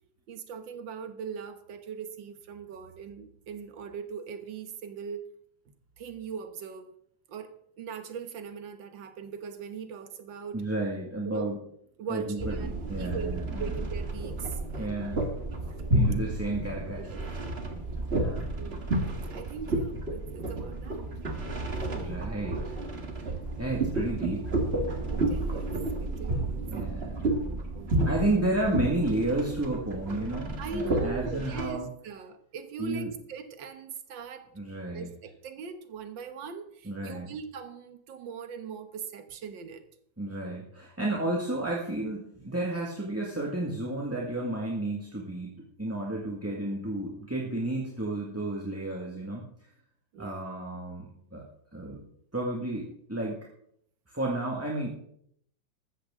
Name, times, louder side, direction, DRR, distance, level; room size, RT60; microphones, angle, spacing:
voice 1, 0.3-5.3 5.7-6.9 7.3-10.6 11.3-11.5 12.0-15.1 17.0-17.2 18.6-18.9 19.3-21.1 25.1-26.7 27.7-28.3 30.6-34.5 34.9-39.8 50.1-50.5, right 6 dB, 75° right, 9 dB, 1.9 m, -40 dB
voice 2, 10.5-11.6 12.1-13.7 14.8-15.2 15.9-17.1 18.1-18.5 21.9-22.8 23.6-24.5 24.9-25.0 26.7-27.3 28.1-31.9 32.8-33.1 34.5-35.1 36.8-37.3 40.2-49.4 50.2-51.4 51.7-52.0 52.3-53.4 54.1-54.9, right 1 dB, 10° right, -3 dB, 1.7 m, -32 dB
sound 1, 12.4-31.7, right 2 dB, 35° right, 1.8 m, -31 dB
14.5 x 13.0 x 3.7 m, 0.68 s
omnidirectional pair, 2.1 m